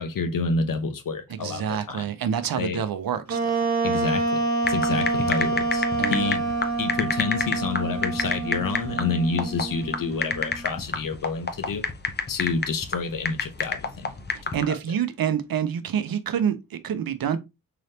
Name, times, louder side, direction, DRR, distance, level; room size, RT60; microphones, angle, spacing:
voice 1, 0.0-2.1 2.6-2.8 3.8-6.4 6.8-11.9 12.3-14.1 14.4-14.5, left 4 dB, 70° left, 0.8 m, -29 dB
voice 2, 1.4-3.7 4.9-5.0 6.0-6.5 14.5-17.4, right 8 dB, 85° right, 0.6 m, -27 dB
Wind instrument woodwind instrument, 3.3-10.7, right 3 dB, 50° right, 1.0 m, -27 dB
sound 1, 4.6-14.6, left 4 dB, 30° left, 0.7 m, -29 dB
3.9 x 3.2 x 2.7 m
wide cardioid pair, 80°, 34 cm